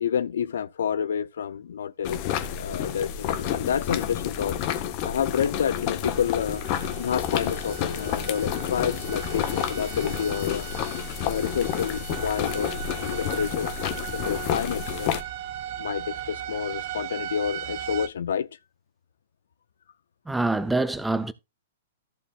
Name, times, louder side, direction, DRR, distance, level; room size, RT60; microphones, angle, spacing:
voice 1, 0.0-4.6 5.0-6.6 7.0-10.7 11.2-12.7 13.0-15.2 15.8-18.6, left 8 dB, 70° left, 0.5 m, -29 dB
sound 1, 2.0-15.2, left 9 dB, 45° left, 1.4 m, -30 dB
sound 2, 6.0-18.1, right 11 dB, 55° right, 1.3 m, -37 dB
voice 2, 20.3-21.3, right 2 dB, 5° right, 0.6 m, -25 dB
14.5 x 6.9 x 2.5 m
hypercardioid pair, 115°, 0 cm